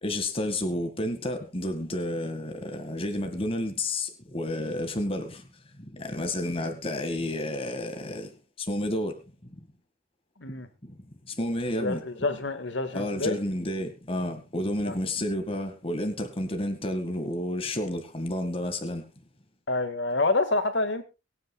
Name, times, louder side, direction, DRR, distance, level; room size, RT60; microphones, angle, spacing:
voice 1, 0.0-5.4 5.9-8.3 8.7-9.1 11.4-12.0 12.9-19.0, left 1 dB, 30° left, 1.9 m, -30 dB
voice 2, 11.8-13.4 14.9-15.0 19.7-21.0, left 2 dB, 70° left, 1.8 m, -27 dB
23.5 x 9.4 x 2.3 m
head